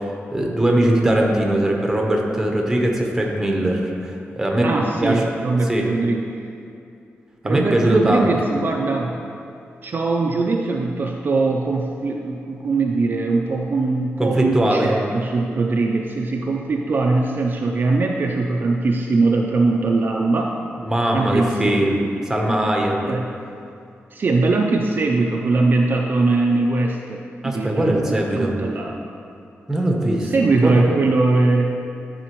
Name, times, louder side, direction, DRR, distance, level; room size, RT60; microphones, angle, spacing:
voice 1, 0.0-4.7 5.0-5.2 5.7-5.9 7.4-8.3 14.2-14.9 20.9-22.0 22.3-22.9 27.4-28.5 29.7-30.3 30.6-30.8, right 1 dB, 10° right, 0 dB, 0.8 m, -20 dB
voice 2, 4.6-6.4 7.4-9.2 9.8-20.6 21.1-22.0 23.0-23.3 24.1-29.1 30.2-31.8, right 3 dB, 45° right, 0 dB, 0.4 m, -21 dB
11.0 x 4.2 x 3.0 m, 2.5 s
wide cardioid pair, 120°, 5 cm